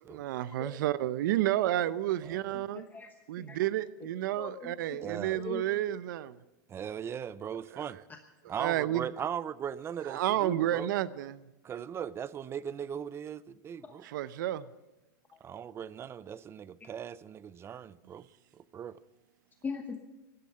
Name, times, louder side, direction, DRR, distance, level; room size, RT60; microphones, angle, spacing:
voice 1, 0.1-2.8 3.3-6.4 7.6-8.0 8.4-9.1 10.0-11.4 14.0-14.7, right 13 dB, 75° right, 0.7 m, -31 dB
voice 2, 2.5-3.6 4.3-5.0 5.3-5.7 8.1-8.2 13.8-13.9 15.3-15.4 19.6-20.0, left 5 dB, 15° left, 1.1 m, -41 dB
voice 3, 5.0-5.4 6.7-8.0 8.5-10.9 11.6-14.0 15.4-18.2 18.7-18.9, right 8 dB, 25° right, 0.6 m, -38 dB
16.5 x 12.0 x 5.7 m
supercardioid pair, 120°, 11 cm